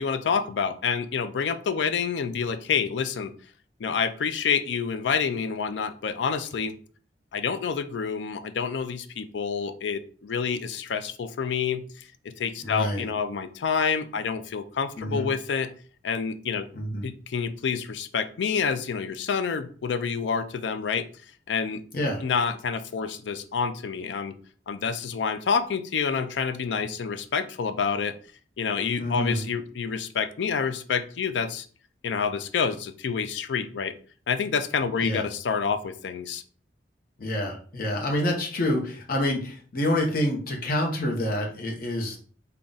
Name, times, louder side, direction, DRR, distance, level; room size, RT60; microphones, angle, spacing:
voice 1, 0.0-3.3 3.8-6.7 7.3-11.8 12.4-15.7 16.0-16.7 17.0-21.0 21.5-21.8 22.2-24.3 24.7-28.1 28.6-31.7 32.0-33.9 34.3-36.4, left 6 dB, 85° left, 10 dB, 0.4 m, -28 dB
voice 2, 12.6-13.1 15.0-15.3 16.7-17.0 21.9-22.2 29.0-29.4 35.0-35.2 37.2-42.2, left 1 dB, 55° left, 0 dB, 0.8 m, -27 dB
3.6 x 2.3 x 3.9 m, 0.43 s
head